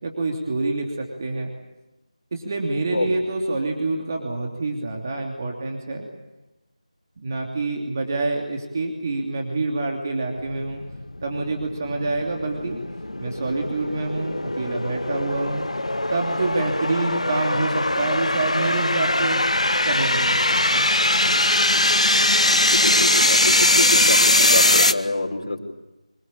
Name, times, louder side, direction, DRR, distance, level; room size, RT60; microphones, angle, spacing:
voice 1, 0.0-0.9 1.2-1.5 2.3-6.1 7.2-10.8 11.2-12.8 13.2-15.7 16.1-19.4 19.8-20.4 20.7-20.9, right 2 dB, 30° right, 1 dB, 2.9 m, -26 dB
sound 1, 10.4-24.9, left 1 dB, 65° left, 1.5 m, -21 dB
voice 2, 22.7-25.6, left 2 dB, 40° left, 1 dB, 4.9 m, -26 dB
26.0 x 21.5 x 8.7 m, 1.0 s
figure-of-eight pair, 165°, 4 cm